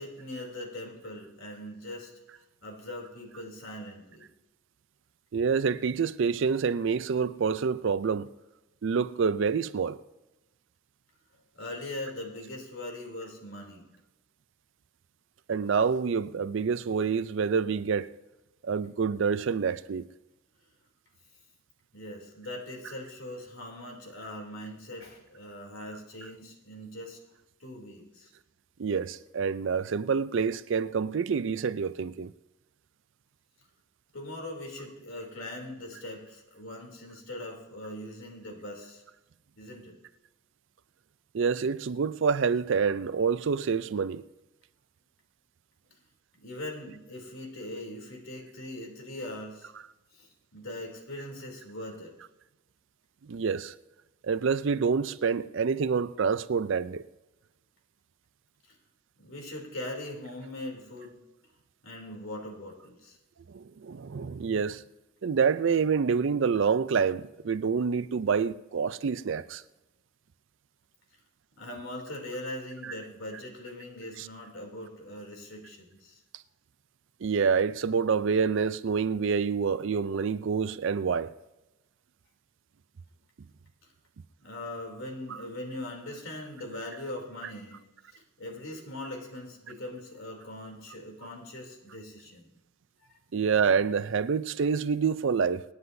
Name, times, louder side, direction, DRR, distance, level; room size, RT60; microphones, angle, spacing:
voice 1, 0.0-2.1 2.6-4.3 11.5-13.9 21.9-27.2 27.6-28.3 34.1-39.0 39.6-39.9 46.4-49.7 50.1-52.1 58.7-58.8 59.2-61.1 61.8-63.2 71.6-76.2 84.4-87.8 88.1-92.5 93.0-93.2, left 1 dB, 70° left, 3.0 m, -41 dB
voice 2, 5.3-8.3 8.8-10.0 15.5-18.1 18.6-20.1 28.8-32.3 41.3-44.2 53.2-53.7 54.2-57.0 63.5-64.8 65.2-69.6 72.8-72.9 74.2-74.3 77.2-81.3 85.3-85.4 93.3-95.6, right 6 dB, 60° right, 0.4 m, -27 dB
26.0 x 9.5 x 2.7 m
head